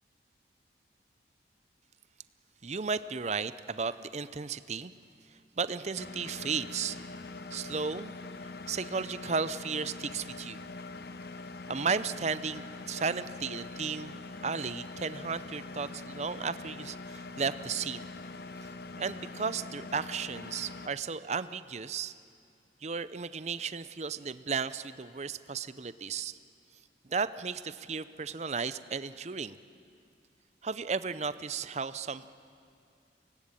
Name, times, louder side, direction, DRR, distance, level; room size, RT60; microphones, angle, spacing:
voice 1, 2.6-4.9 5.6-7.1 7.5-8.1 8.7-10.6 11.7-18.0 19.0-22.1 22.8-26.4 27.1-29.6 30.6-32.3, right 5 dB, 35° right, 14 dB, 0.6 m, -34 dB
Engine, 6.0-20.9, left 3 dB, 55° left, 0.8 m, -43 dB
24.0 x 18.5 x 9.0 m, 2.4 s
head